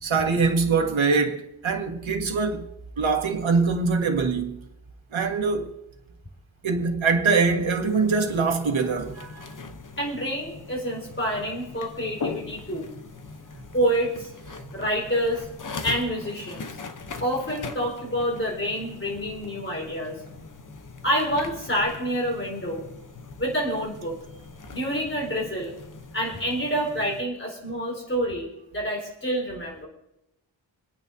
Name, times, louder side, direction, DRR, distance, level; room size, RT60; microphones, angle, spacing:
voice 1, 0.0-2.7 3.0-4.6 5.1-5.7 6.6-9.5, right 4 dB, 75° right, 1.7 m, -23 dB
sound 1, 7.8-27.2, left 4 dB, 40° left, 0.8 m, -41 dB
voice 2, 10.0-12.9 13.7-14.3 14.7-15.5 15.8-16.7 17.2-20.1 21.0-22.8 23.4-24.1 24.7-25.7 26.1-29.9, equal, 25° left, 4.2 m, -27 dB
27.5 x 9.2 x 2.7 m
wide cardioid pair, 95°, 47 cm